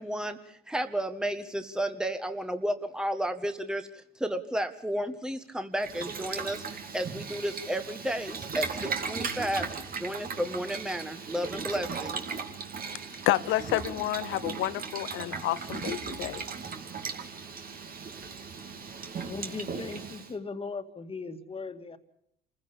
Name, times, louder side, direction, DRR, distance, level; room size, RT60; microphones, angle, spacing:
voice 1, 0.0-3.9 4.2-9.7 10.0-12.2, equal, 5° right, 1.6 m, -32 dB
Boiling, 5.8-20.3, right 5 dB, 45° right, 2.5 m, -37 dB
voice 2, 13.3-16.4, left 15 dB, 70° left, 1.0 m, -29 dB
voice 3, 19.2-22.0, left 4 dB, 25° left, 2.2 m, -38 dB
27.0 x 15.5 x 7.1 m
supercardioid pair, 70°, 21 cm